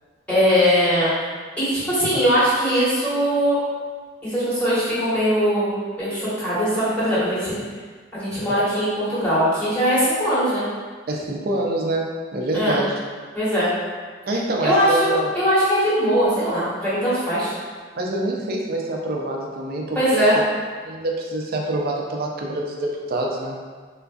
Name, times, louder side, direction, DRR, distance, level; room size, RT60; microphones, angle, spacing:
voice 1, 0.3-1.1 1.6-3.6 4.2-7.6 8.1-10.6 12.5-12.8 13.3-13.7 14.6-17.5 19.9-20.3, equal, 5° left, -12 dB, 1.3 m, -20 dB
voice 2, 11.1-13.0 14.3-15.3 18.0-20.2 20.8-23.6, right 1 dB, 55° right, 0 dB, 0.4 m, -26 dB
3.8 x 2.4 x 2.4 m, 1.5 s
head